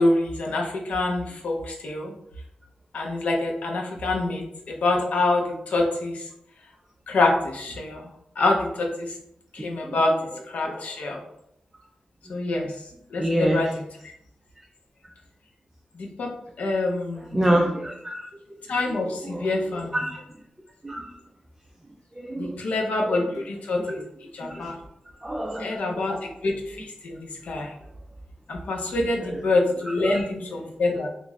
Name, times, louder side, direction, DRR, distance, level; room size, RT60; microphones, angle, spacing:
voice 1, 0.0-2.1 2.9-6.2 7.1-8.1 8.4-9.1 9.5-10.2 10.5-11.2 12.3-12.7 13.1-13.9 15.9-17.4 18.7-20.0 22.4-24.0 24.3-24.8 25.6-26.2 26.4-27.7 28.5-31.1, left 2 dB, 75° left, 1 dB, 0.7 m, -26 dB
voice 2, 13.2-13.6 17.3-18.3 18.9-19.5 19.9-20.2 20.8-21.1 22.2-22.5 23.8-24.0 24.4-24.7 25.2-25.7 30.0-30.2, right 1 dB, 15° right, 0 dB, 0.4 m, -26 dB
3.6 x 2.5 x 3.1 m, 0.74 s
wide cardioid pair, 135°, 2 cm